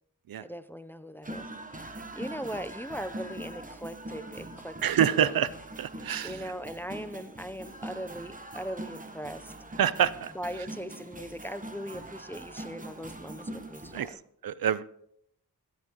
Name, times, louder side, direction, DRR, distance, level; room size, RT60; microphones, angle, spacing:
voice 1, 0.4-1.5 1.7-4.8 5.1-5.4 6.2-9.5 10.3-14.2, equal, 5° left, 12 dB, 0.5 m, -39 dB
sound 1, 1.2-14.1, right 1 dB, 20° right, 1.0 m, -42 dB
voice 2, 4.8-5.5 5.8-6.4 9.8-10.3 13.9-14.1 14.4-14.9, right 9 dB, 65° right, 17 dB, 0.5 m, -26 dB
16.0 x 10.5 x 2.9 m, 0.73 s
wide cardioid pair, 80°, 38 cm